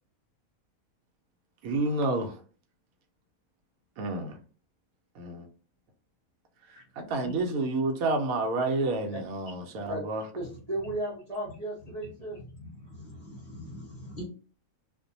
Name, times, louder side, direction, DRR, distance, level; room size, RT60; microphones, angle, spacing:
voice 1, 1.6-2.3 4.0-4.4 5.2-5.5 7.0-10.2, right 2 dB, 75° right, 1.0 m, -29 dB
voice 2, 10.3-12.4, right 1 dB, 40° right, 0.6 m, -34 dB
voice 3, 12.6-14.2, left 1 dB, 50° left, 0.8 m, -43 dB
2.5 x 2.1 x 2.6 m
omnidirectional pair, 1.5 m